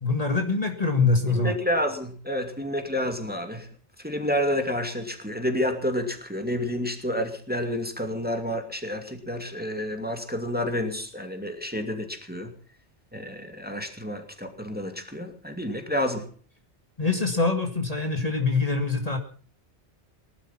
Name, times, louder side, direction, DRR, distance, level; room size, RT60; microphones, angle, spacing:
voice 1, 0.0-1.5 17.0-19.2, left 3 dB, 35° left, 5 dB, 2.0 m, -24 dB
voice 2, 1.3-3.7 4.0-12.5 13.1-16.3, left 1 dB, 10° right, 5 dB, 2.4 m, -29 dB
19.5 x 12.0 x 5.8 m, 0.44 s
omnidirectional pair, 1.2 m